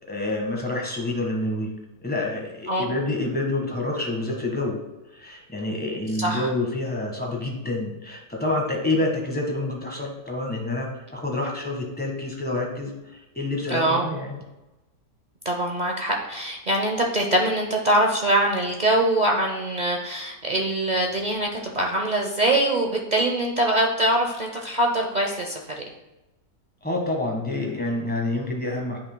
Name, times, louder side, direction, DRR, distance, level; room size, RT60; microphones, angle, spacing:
voice 1, 0.1-1.7 2.0-4.8 5.1-14.4 26.8-29.0, left 2 dB, 5° left, -1 dB, 1.3 m, -28 dB
voice 2, 6.2-6.5 13.7-14.1 15.4-25.9, right 1 dB, 35° right, 0 dB, 0.7 m, -23 dB
10.0 x 5.6 x 2.2 m, 1.0 s
omnidirectional pair, 1.6 m